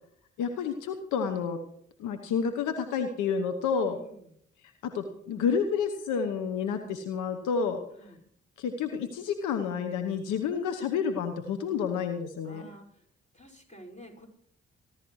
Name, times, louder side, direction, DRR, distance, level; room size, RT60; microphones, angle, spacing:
voice 1, 0.4-1.6 2.0-4.0 4.8-7.8 8.6-12.7, left 6 dB, 80° left, 6 dB, 1.1 m, -30 dB
voice 2, 3.9-4.3 8.0-8.2 12.4-13.1 13.3-14.3, equal, 25° left, 1 dB, 5.5 m, -50 dB
25.0 x 12.5 x 3.2 m, 0.67 s
hypercardioid pair, 40°, 30 cm